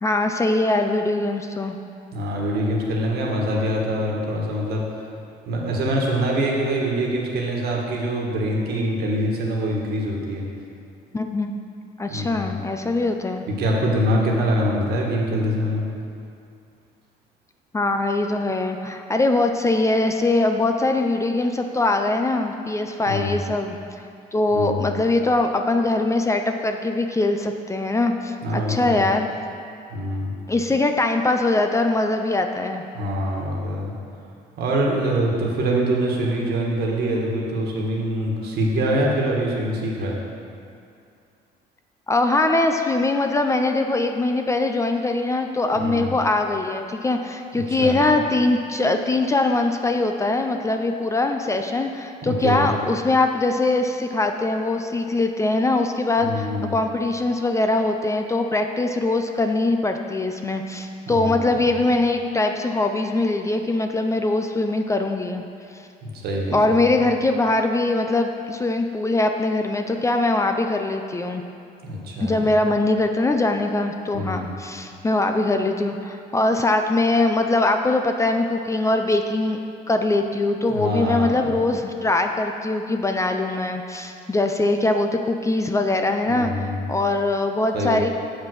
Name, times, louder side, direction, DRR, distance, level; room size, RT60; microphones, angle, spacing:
voice 1, 0.0-1.8 11.1-11.6 12.0-13.4 17.7-23.8 24.3-29.3 30.5-32.8 42.1-65.4 66.5-71.4 72.2-79.6 79.9-88.1, left 2 dB, 15° left, 5 dB, 0.4 m, -22 dB
voice 2, 2.1-5.1 5.5-10.4 12.1-12.5 13.5-15.8 23.1-23.5 24.5-24.9 28.4-29.0 29.9-30.3 32.9-33.9 34.6-40.2 45.8-46.1 47.5-48.1 52.2-52.6 56.2-56.7 61.1-61.5 66.0-66.6 71.8-72.5 74.1-74.5 80.7-81.5 86.2-86.8 87.7-88.0, equal, 70° right, -1 dB, 1.6 m, -24 dB
7.2 x 5.1 x 6.2 m, 2.5 s
cardioid pair, 110°, 17 cm